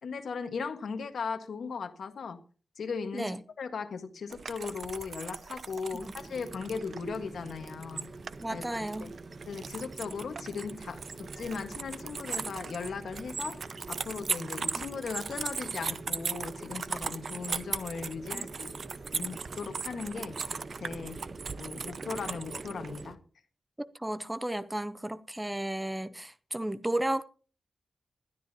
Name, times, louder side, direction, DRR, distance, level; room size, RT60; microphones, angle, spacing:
voice 1, 0.0-2.4 2.8-8.1 8.5-9.1 9.5-13.6 13.9-18.7 19.1-21.2 21.6-23.2, left 5 dB, 80° left, 1.5 m, -38 dB
sound 1, 4.3-23.0, right 5 dB, 55° right, 0.6 m, -38 dB
sound 2, 5.7-23.2, right 3 dB, 35° right, 1.0 m, -46 dB
voice 2, 8.4-9.1 14.7-14.8 18.3-18.5 23.8-27.2, right 1 dB, 10° right, 0.5 m, -33 dB
20.5 x 12.5 x 2.9 m
wide cardioid pair, 165°, 0 cm